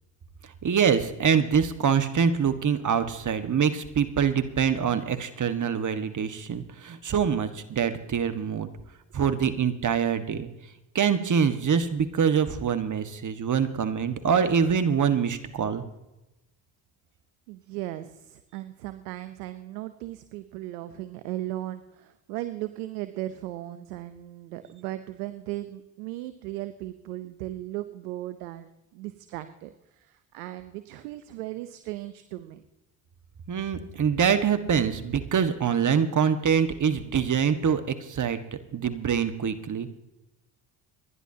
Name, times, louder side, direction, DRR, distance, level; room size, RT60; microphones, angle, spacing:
voice 1, 0.6-8.7 9.1-10.5 10.9-15.8 33.5-38.4 38.7-39.9, right 7 dB, 40° right, 9 dB, 1.5 m, -25 dB
voice 2, 17.5-32.6, right 15 dB, 90° right, 12 dB, 0.8 m, -37 dB
27.5 x 11.0 x 2.8 m, 0.97 s
hypercardioid pair, 60°, 44 cm